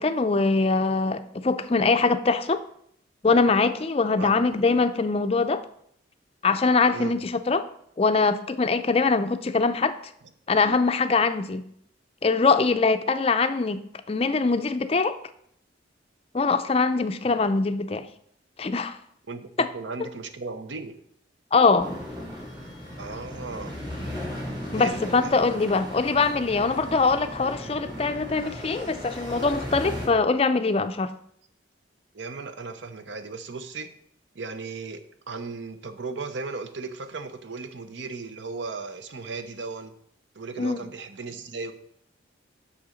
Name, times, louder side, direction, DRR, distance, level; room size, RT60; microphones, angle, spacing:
voice 1, 0.0-2.6 3.2-5.6 6.4-7.7 8.0-9.9 10.5-11.6 12.2-13.8 14.1-15.2 16.3-18.1 18.6-19.0 19.6-19.7 21.5-21.9 24.7-31.1 40.6-40.8, left 4 dB, 30° left, 10 dB, 0.4 m, -23 dB
voice 2, 19.3-21.0 23.0-23.7 24.8-25.4 32.1-33.9 34.3-39.9 40.3-41.7, right 4 dB, 70° right, 9 dB, 0.8 m, -36 dB
sound 1, 21.8-30.1, equal, 25° right, 3.0 m, -36 dB
6.8 x 6.3 x 5.0 m, 0.70 s
head